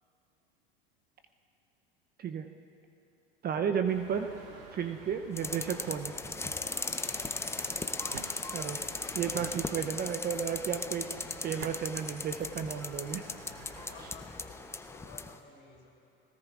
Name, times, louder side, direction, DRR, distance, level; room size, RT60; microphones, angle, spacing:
voice 1, 3.4-4.3 4.7-6.1 8.5-8.8 9.1-11.1 11.4-13.2, right 7 dB, 30° right, 7 dB, 0.6 m, -33 dB
sound 1, 3.8-14.1, right 4 dB, 70° right, 2.5 m, -53 dB
sound 2, 5.4-15.4, left 3 dB, 10° left, 0.6 m, -38 dB
sound 3, 5.6-6.6 7.6-8.9 9.4-10.2 11.0-11.8, right 9 dB, 90° right, 0.7 m, -48 dB
voice 2, 6.7-7.3 13.3-16.1, left 4 dB, 45° left, -1 dB, 4.0 m, -54 dB
20.5 x 18.0 x 2.4 m, 2.9 s
hypercardioid pair, 90°, 29 cm